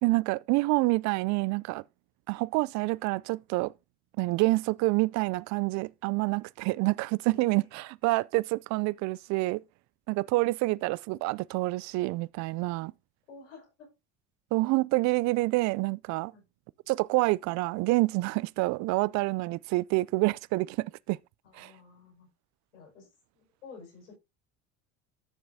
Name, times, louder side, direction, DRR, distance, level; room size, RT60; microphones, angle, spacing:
voice 1, 0.0-1.8 2.3-3.7 4.2-9.6 10.1-12.9 14.5-16.3 16.9-21.2 21.5-21.7, right 22 dB, 55° right, 0.4 m, -27 dB
voice 2, 7.3-7.7 13.3-13.9 16.3-16.4 21.4-22.3 22.7-23.1 23.3-24.2, left 4 dB, 90° left, 5.7 m, -51 dB
12.5 x 6.8 x 2.7 m
hypercardioid pair, 85°, 35 cm